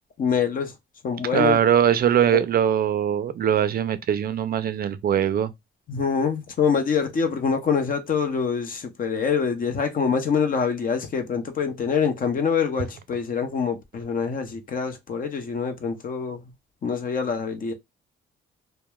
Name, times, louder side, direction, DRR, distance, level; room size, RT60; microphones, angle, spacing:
voice 1, 0.2-0.7 1.0-1.6 5.9-16.4 16.8-17.7, left 6 dB, 45° left, 0.6 m, -25 dB
voice 2, 1.3-5.5, right 9 dB, 50° right, 0.4 m, -21 dB
2.9 x 2.0 x 2.2 m
cardioid pair, 90°, 20 cm